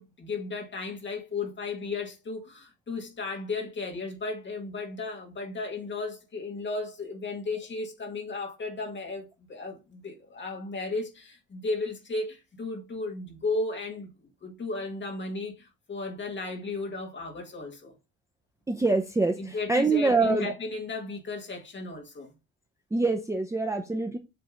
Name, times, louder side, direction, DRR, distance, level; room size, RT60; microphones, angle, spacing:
voice 1, 0.0-17.9 19.4-22.3, left 3 dB, 30° left, 2.0 m, -35 dB
voice 2, 18.7-20.5 22.9-24.2, right 3 dB, 10° right, 0.5 m, -25 dB
7.8 x 3.4 x 5.1 m
cardioid pair, 170°, 35 cm